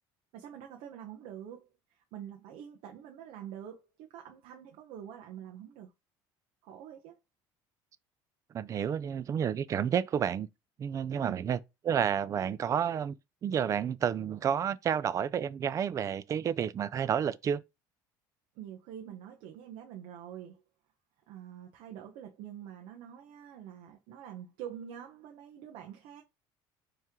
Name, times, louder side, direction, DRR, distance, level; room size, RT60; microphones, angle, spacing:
voice 1, 0.3-5.9 6.6-7.2 11.1-11.4 18.5-20.6 21.3-26.2, right 9 dB, 75° right, 0.9 m, -46 dB
voice 2, 8.5-10.5 10.8-11.6 11.8-13.2 13.4-17.6, right 8 dB, 35° right, 0.4 m, -30 dB
4.6 x 3.1 x 3.6 m
cardioid pair, 125°, 10 cm